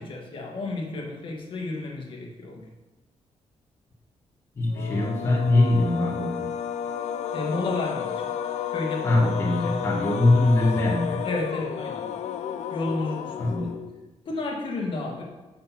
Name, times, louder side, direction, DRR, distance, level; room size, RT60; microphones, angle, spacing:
voice 1, 0.0-2.7 7.3-8.3 8.7-9.2 10.1-10.2 11.2-12.1 12.7-13.7 14.2-15.2, left 2 dB, 50° left, 1 dB, 1.4 m, -32 dB
voice 2, 4.6-6.6 9.0-11.3 13.4-13.8, left 2 dB, 20° left, -3 dB, 1.1 m, -22 dB
sound 1, 4.7-14.1, left 9 dB, 80° left, 0.4 m, -32 dB
6.5 x 5.8 x 5.8 m, 1.1 s
wide cardioid pair, 175°, 12 cm